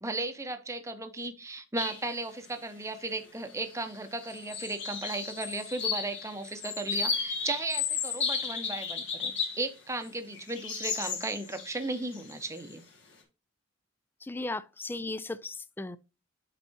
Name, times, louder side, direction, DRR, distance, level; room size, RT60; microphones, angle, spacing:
voice 1, 0.0-9.3 9.6-12.8, right 2 dB, 15° right, 0.7 m, -35 dB
sound 1, 1.8-2.1 2.4-2.5 3.5-3.9 4.2-9.7 10.0-12.7, left 6 dB, 65° left, 1.9 m, -34 dB
voice 2, 14.2-16.0, left 2 dB, 10° left, 0.3 m, -36 dB
10.5 x 4.1 x 2.7 m
head